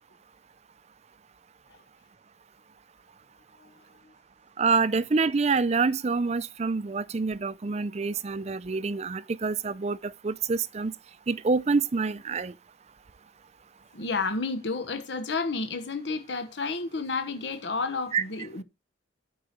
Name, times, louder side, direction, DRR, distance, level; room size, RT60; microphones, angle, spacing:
voice 1, 3.6-4.1 13.9-18.6, left 4 dB, 70° left, 1.1 m, -31 dB
voice 2, 4.6-10.9 11.3-12.5 18.1-18.2, right 4 dB, 35° right, 0.5 m, -27 dB
8.7 x 4.7 x 6.5 m
head